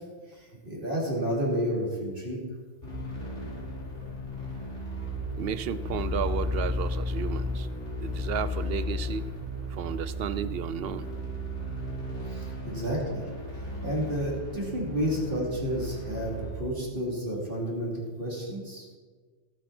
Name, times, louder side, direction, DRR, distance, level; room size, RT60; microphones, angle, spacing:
voice 1, 0.4-2.4 12.3-13.3 13.8-18.9, equal, 45° right, -4 dB, 3.5 m, -31 dB
sound 1, 2.8-16.5, left 1 dB, 75° left, 4.7 m, -34 dB
voice 2, 5.4-7.7 8.0-9.3 9.7-11.1, right 8 dB, 60° right, 14 dB, 0.7 m, -33 dB
18.0 x 8.9 x 4.4 m, 1.5 s
omnidirectional pair, 1.2 m